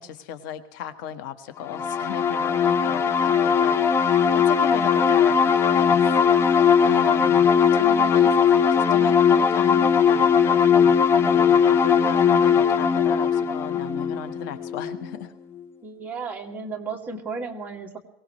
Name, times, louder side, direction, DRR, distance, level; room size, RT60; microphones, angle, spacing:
voice 1, 0.0-6.1 6.8-15.4, left 9 dB, 80° left, 9 dB, 1.5 m, -36 dB
sound 1, 1.7-15.2, left 7 dB, 25° left, 0.7 m, -19 dB
voice 2, 15.8-18.0, right 4 dB, 15° right, 0 dB, 2.4 m, -34 dB
23.0 x 18.5 x 3.2 m, 0.79 s
cardioid pair, 155°, 10 cm